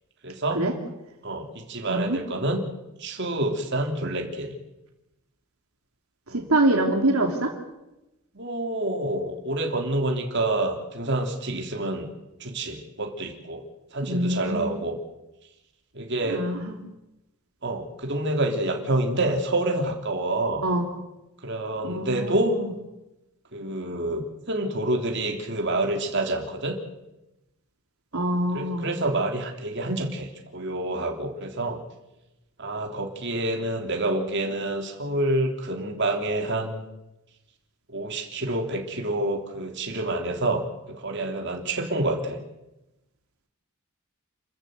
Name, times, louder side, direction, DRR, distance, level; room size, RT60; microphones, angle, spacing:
voice 1, 0.2-0.6 1.2-2.6 3.0-4.5 6.3-6.4 8.3-12.1 12.4-13.6 13.9-15.0 15.9-16.5 17.6-20.7 21.4-22.6 23.5-26.8 28.1-31.8 32.6-36.8 37.9-42.4, right 1 dB, 55° right, 3 dB, 3.1 m, -28 dB
voice 2, 1.9-2.2 6.3-7.5 14.1-14.7 16.3-16.7 20.6-20.8 21.8-22.6 28.1-28.9, right 1 dB, 75° right, 3 dB, 2.8 m, -25 dB
28.0 x 14.5 x 8.2 m, 0.96 s
head